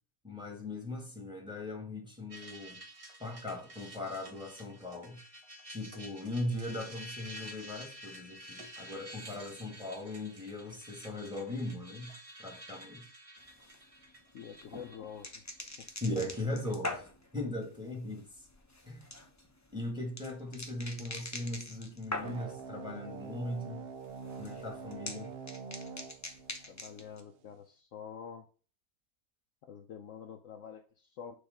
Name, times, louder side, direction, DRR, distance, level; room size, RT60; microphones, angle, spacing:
voice 1, 0.2-2.8 3.2-5.2 5.7-13.1 16.0-17.1 17.3-18.3 18.9-19.1 19.7-23.9 24.4-25.3, left 1 dB, 5° right, 1.5 m, -39 dB
sound 1, 2.3-16.7, right 1 dB, 25° right, 0.9 m, -50 dB
sound 2, 13.4-22.7 23.0-23.6 23.8-27.2, left 2 dB, 20° left, 0.5 m, -44 dB
voice 2, 14.3-15.4 15.8-15.9 26.7-28.5 29.6-31.3, left 7 dB, 65° left, 0.9 m, -47 dB
sound 3, 22.2-27.2, right 5 dB, 65° right, 0.6 m, -44 dB
6.4 x 3.5 x 5.1 m
omnidirectional pair, 1.6 m